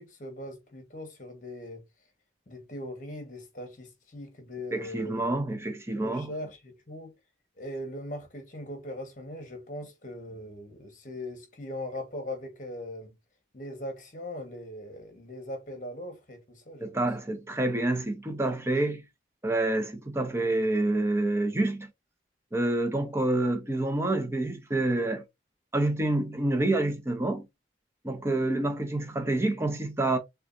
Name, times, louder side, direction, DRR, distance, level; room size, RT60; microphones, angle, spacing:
voice 1, 0.0-1.8 2.5-5.3 5.9-7.1 7.6-13.2 13.5-17.1 22.8-23.0 28.3-28.5, left 1 dB, 45° left, 1.4 m, -40 dB
voice 2, 4.7-6.3 16.8-19.0 19.4-21.9 22.5-25.2 25.7-27.5 28.0-30.2, right 2 dB, 15° right, 0.8 m, -27 dB
6.3 x 2.4 x 2.7 m
head